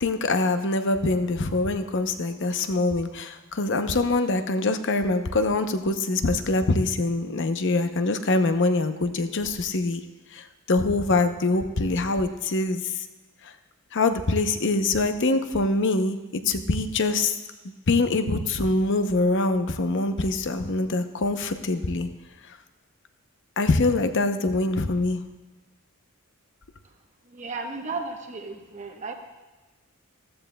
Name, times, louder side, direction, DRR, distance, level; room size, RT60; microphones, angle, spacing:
voice 1, 0.0-10.0 10.3-13.1 13.4-13.5 13.9-17.3 17.9-22.1 23.6-25.2, left 2 dB, 55° left, 8 dB, 0.7 m, -24 dB
voice 2, 27.3-29.1, right 3 dB, 35° right, 3 dB, 1.0 m, -34 dB
14.5 x 14.0 x 2.3 m, 1.2 s
head